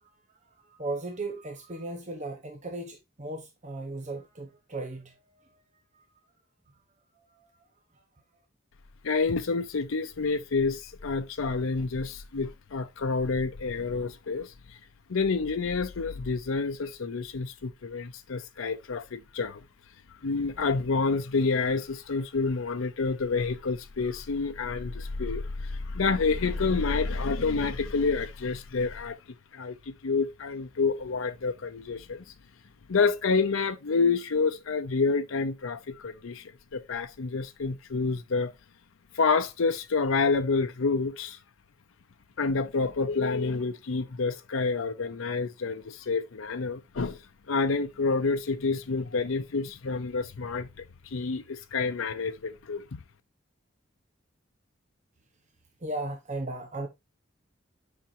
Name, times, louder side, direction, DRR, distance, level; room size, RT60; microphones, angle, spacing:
voice 1, 0.6-5.6 5.9-6.1 7.2-7.5 55.8-56.9, right 2 dB, 35° right, 1.0 m, -37 dB
voice 2, 9.0-14.8 15.1-19.6 20.2-29.2 29.5-32.3 32.9-38.5 39.1-41.4 42.4-53.0, left 4 dB, 85° left, 0.6 m, -28 dB
8.9 x 5.9 x 2.7 m
head